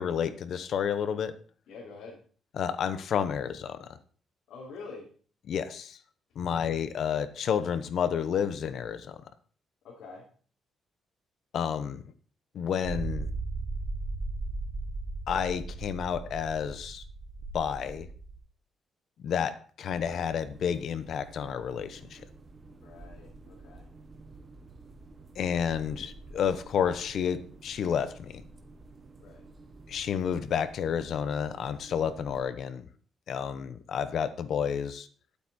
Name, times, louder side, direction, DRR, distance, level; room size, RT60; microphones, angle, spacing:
voice 1, 0.0-1.3 2.6-3.9 5.5-6.0 6.4-9.2 11.5-12.0 12.5-13.3 15.3-17.0 17.5-18.1 19.2-22.2 25.4-28.4 29.9-32.9 33.3-35.1, left 8 dB, 60° left, 12 dB, 1.0 m, -30 dB
voice 2, 1.7-2.2 4.5-5.1 6.3-6.6 9.8-10.3 22.8-23.9 29.2-29.4, left 4 dB, 80° left, -4 dB, 3.2 m, -46 dB
sound 1, 12.8-18.4, right 3 dB, 45° right, 4.6 m, -36 dB
sound 2, 19.9-32.4, right 2 dB, 30° right, 1.4 m, -50 dB
11.5 x 8.5 x 4.4 m, 0.43 s
cardioid pair, 120°, 0 cm